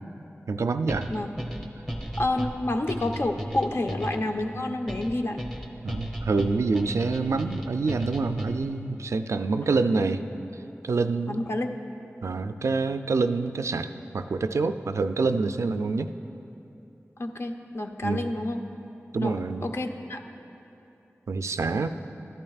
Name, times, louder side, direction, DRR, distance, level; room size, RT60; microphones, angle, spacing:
voice 1, 0.5-1.1 5.8-10.2 10.8-11.4 12.2-16.1 18.0-18.3 19.1-19.7 21.3-21.9, right 4 dB, 75° right, 9 dB, 0.3 m, -26 dB
sound 1, 0.9-8.8, right 1 dB, 5° left, 1.0 m, -35 dB
voice 2, 2.2-5.4 11.3-11.7 17.2-18.6 19.2-20.2, left 2 dB, 60° left, 5 dB, 0.6 m, -29 dB
12.5 x 11.0 x 2.4 m, 2.9 s
cardioid pair, 40°, 5 cm